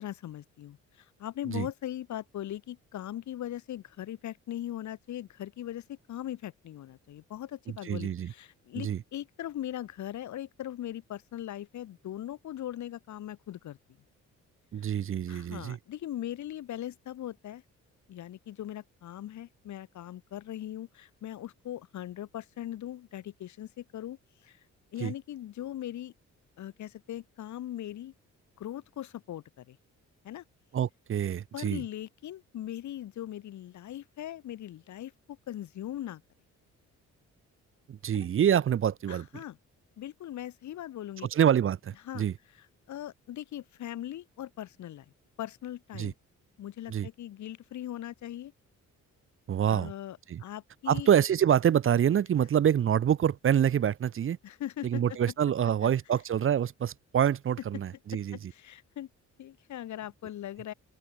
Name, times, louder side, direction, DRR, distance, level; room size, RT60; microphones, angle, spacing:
voice 1, 0.0-13.8 15.3-17.6 18.1-24.6 24.9-26.1 26.6-28.1 28.6-29.8 30.2-30.4 31.5-36.2 38.1-38.3 39.1-39.6 40.0-41.3 42.0-42.3 42.9-45.0 45.4-46.1 46.6-48.5 49.7-51.1 54.4-55.0 55.8-55.9 58.3-59.1 59.4-60.7, left 12 dB, 75° left, 3.4 m, -40 dB
voice 2, 7.7-8.3 8.8-9.0 14.7-15.8 25.0-25.1 30.7-31.8 37.9-39.4 41.3-42.3 45.9-46.1 46.9-47.1 49.5-49.9 50.3-50.4 50.9-54.4 54.8-58.4, right 9 dB, 45° right, 0.9 m, -26 dB
open air
cardioid pair, 130°, 29 cm